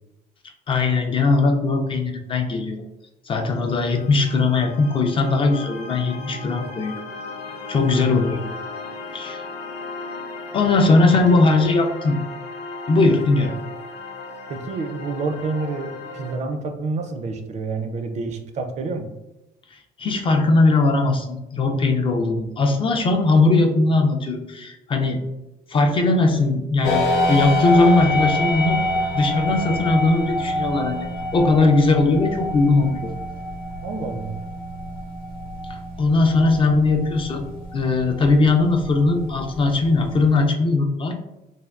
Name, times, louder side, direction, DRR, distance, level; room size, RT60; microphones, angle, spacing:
voice 1, 0.7-2.8 3.3-7.0 7.7-8.4 9.1-9.4 10.5-12.2 12.9-13.5 20.0-25.2 25.7-28.8 29.1-33.1 35.7-37.5 37.7-41.1, left 3 dB, 30° left, 4 dB, 0.3 m, -19 dB
sound 1, 3.5-16.4, left 3 dB, 85° left, 0.5 m, -36 dB
voice 2, 8.0-8.5 11.0-11.5 14.5-19.1 33.8-34.3, right 3 dB, 45° right, 6 dB, 0.4 m, -29 dB
sound 2, 26.8-40.5, equal, 55° left, 0.8 m, -27 dB
3.3 x 2.2 x 2.3 m, 0.95 s
cardioid pair, 110°, 17 cm